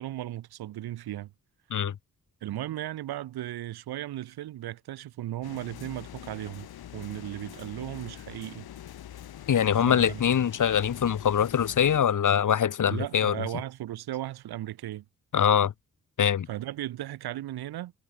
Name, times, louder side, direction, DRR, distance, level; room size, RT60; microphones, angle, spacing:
voice 1, 0.0-1.3 2.4-6.7 6.9-8.7 9.8-10.2 12.9-15.0 16.5-17.9, right 14 dB, 85° right, 4.0 m, -36 dB
sound 1, 5.4-12.0, left 11 dB, 75° left, 3.6 m, -44 dB
voice 2, 9.5-13.3 15.3-15.7 16.2-16.5, left 8 dB, 55° left, 1.3 m, -23 dB
supercardioid pair, 50°, 37 cm